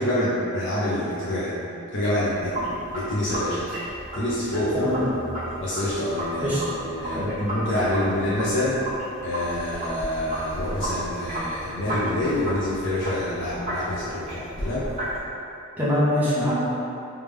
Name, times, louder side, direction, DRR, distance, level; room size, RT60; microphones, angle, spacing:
voice 1, 0.0-1.5 1.9-2.5 2.9-3.6 4.1-5.1 5.6-8.8 9.2-14.9, left 1 dB, 55° left, -10 dB, 0.7 m, -26 dB
Sink (filling or washing), 2.3-15.2, right 1 dB, 30° right, 1.4 m, -33 dB
voice 2, 4.7-5.1 6.4-6.6 7.1-7.3 15.8-16.5, left 1 dB, 10° right, -11 dB, 0.9 m, -24 dB
3.4 x 3.2 x 3.4 m, 2.8 s
head